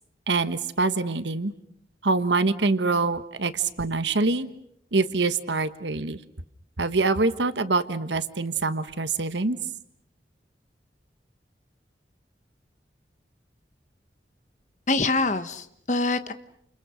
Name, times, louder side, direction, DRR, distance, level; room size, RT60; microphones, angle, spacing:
voice 1, 0.3-1.5 2.0-4.5 4.9-6.2 6.8-9.6, right 3 dB, 85° right, 12 dB, 1.4 m, -25 dB
voice 2, 14.9-16.3, left 3 dB, 40° left, 10 dB, 1.3 m, -25 dB
29.5 x 28.5 x 6.4 m, 0.73 s
head